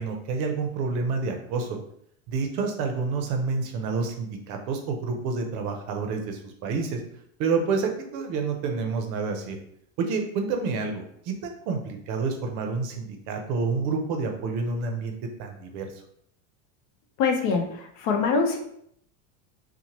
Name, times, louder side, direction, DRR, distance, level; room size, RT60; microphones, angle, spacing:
voice 1, 0.0-1.7 2.3-7.0 7.4-9.6 10.0-15.9, right 4 dB, 50° right, 4 dB, 0.6 m, -28 dB
voice 2, 17.2-18.6, left 5 dB, 65° left, 3 dB, 0.7 m, -24 dB
2.8 x 2.1 x 2.9 m, 0.70 s
supercardioid pair, 145°, 40 cm